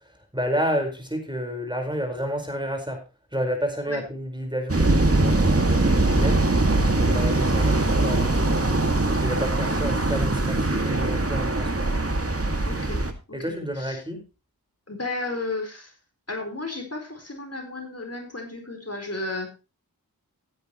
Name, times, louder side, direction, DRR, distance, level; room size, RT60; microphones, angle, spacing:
voice 1, 0.3-3.0 3.3-8.8 9.2-11.9 13.3-14.2, equal, 10° right, 4 dB, 4.8 m, -30 dB
sound 1, 4.7-13.1, right 2 dB, 40° right, 2.2 m, -22 dB
voice 2, 9.6-10.0 12.6-13.0 13.3-13.4 13.7-14.0 14.9-15.9 16.3-19.5, left 2 dB, 40° left, 4 dB, 4.4 m, -33 dB
15.5 x 10.0 x 3.1 m, 0.30 s
cardioid pair, 40°, 37 cm